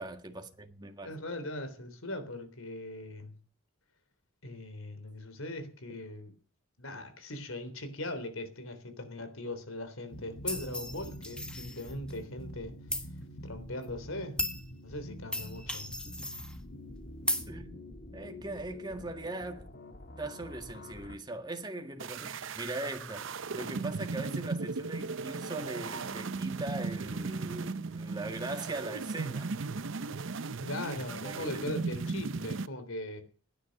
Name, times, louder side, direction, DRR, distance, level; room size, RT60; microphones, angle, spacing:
voice 1, 0.0-1.1 16.0-16.3 17.5-17.9 18.1-19.7 20.2-29.5 31.2-31.6, right 2 dB, 20° right, 1.7 m, -40 dB
voice 2, 1.0-3.4 4.4-6.3 6.8-12.8 13.4-14.4 14.8-15.9 30.6-33.2, left 1 dB, 75° left, 3.5 m, -40 dB
sound 1, 10.1-21.2, equal, 45° left, 1.7 m, -46 dB
sound 2, 10.5-12.2 12.9-13.1 13.8-13.9 14.4-14.6 15.3-16.6 17.3-17.4, left 1 dB, 5° left, 1.7 m, -35 dB
sound 3, 22.0-32.7, right 4 dB, 60° right, 0.7 m, -36 dB
18.0 x 10.0 x 6.5 m
head